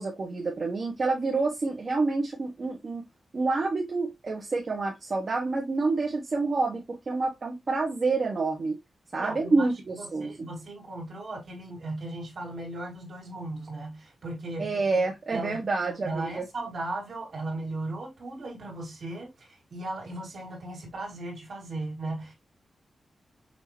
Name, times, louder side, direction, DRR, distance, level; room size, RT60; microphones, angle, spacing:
voice 1, 0.0-3.0 3.3-8.8 9.1-10.3 14.6-16.5, right 3 dB, 40° right, 1.2 m, -28 dB
voice 2, 9.2-14.8 15.3-15.6 16.0-22.3, right 2 dB, 65° right, 2.7 m, -37 dB
6.1 x 2.9 x 2.9 m
wide cardioid pair, 160°, 0 cm